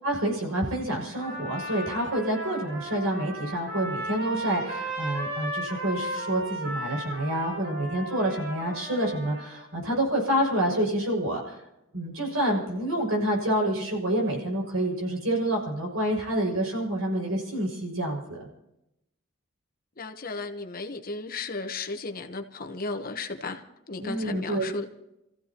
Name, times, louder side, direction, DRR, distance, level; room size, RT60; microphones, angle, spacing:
voice 1, 0.0-11.6 11.9-18.5 24.0-24.7, right 1 dB, 80° right, 6.4 m, -28 dB
Trumpet, 1.1-9.6, right 1 dB, 50° right, 7.8 m, -35 dB
voice 2, 20.0-24.8, left 3 dB, 45° left, 1.2 m, -35 dB
29.0 x 15.5 x 3.0 m
head